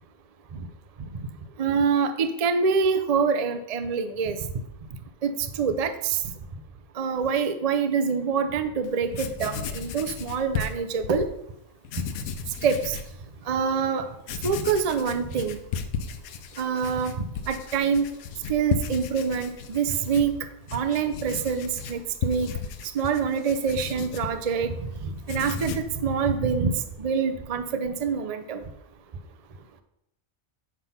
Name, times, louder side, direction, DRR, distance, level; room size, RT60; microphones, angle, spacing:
voice 1, 1.6-4.4 5.2-5.3 5.6-6.2 7.0-11.3 12.6-13.0 13.5-14.1 14.4-15.6 16.6-18.1 18.5-20.3 20.7-22.5 22.9-24.7 25.0-25.7 26.0-26.7 27.0-28.6, right 6 dB, 60° right, 8 dB, 0.4 m, -25 dB
Writing, 8.8-8.9 9.1-11.3 11.8-13.1 13.6-13.7 14.2-24.9 25.2-26.0, left 6 dB, 80° left, 1.1 m, -35 dB
9.6 x 3.8 x 5.7 m, 0.78 s
omnidirectional pair, 1.5 m